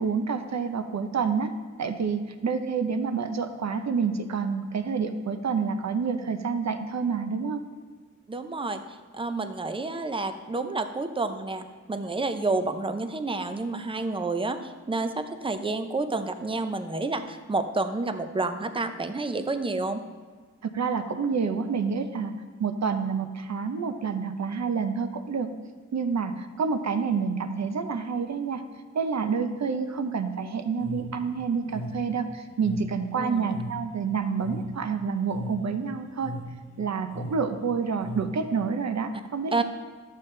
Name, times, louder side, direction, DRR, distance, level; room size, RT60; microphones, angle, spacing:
voice 1, 0.0-1.5 1.8-7.6 20.6-22.3 22.6-25.5 25.9-28.6 28.9-36.3 36.8-39.6, right 5 dB, 60° right, 8 dB, 0.7 m, -28 dB
voice 2, 8.3-8.8 9.1-20.0 33.1-33.5 39.5-39.6, right 3 dB, 15° right, 8 dB, 0.5 m, -29 dB
sound 1, 30.8-38.6, equal, 50° left, 1.0 m, -39 dB
12.0 x 7.6 x 3.3 m, 1.5 s
wide cardioid pair, 115°, 31 cm